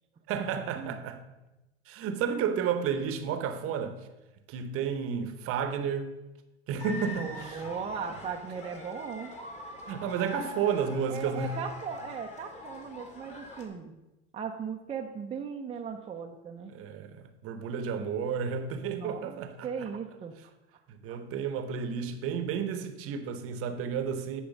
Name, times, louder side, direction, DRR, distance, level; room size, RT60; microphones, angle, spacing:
voice 1, 0.3-1.2 1.9-4.0 4.5-6.1 6.7-7.6 9.9-11.6 16.7-19.7 20.9-24.4, right 7 dB, 40° right, 1.0 m, -32 dB
sound 1, 6.8-13.7, left 2 dB, 20° left, 1.7 m, -43 dB
voice 2, 7.2-9.3 11.1-13.9 14.3-16.7 18.9-20.3 21.1-21.2, right 6 dB, 20° right, 0.6 m, -38 dB
10.5 x 4.7 x 5.3 m
supercardioid pair, 115°, 34 cm